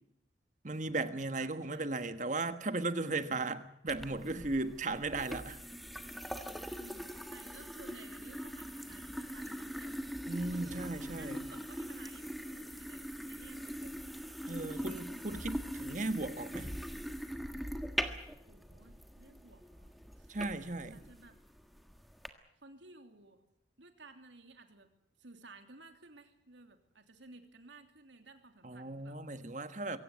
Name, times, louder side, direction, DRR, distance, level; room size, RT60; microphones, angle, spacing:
voice 1, 0.6-5.6 10.3-11.5 14.5-16.7 20.3-21.0 28.6-30.0, right 2 dB, 40° right, 1.4 m, -36 dB
voice 2, 1.3-2.2 4.8-5.0 6.8-10.0 10.5-14.0 18.5-20.4 20.9-21.4 22.6-23.4 23.8-24.9 25.2-29.2, right 3 dB, 80° right, 3.1 m, -56 dB
sound 1, 3.9-22.3, equal, ahead, 1.5 m, -42 dB
23.0 x 17.0 x 9.5 m
head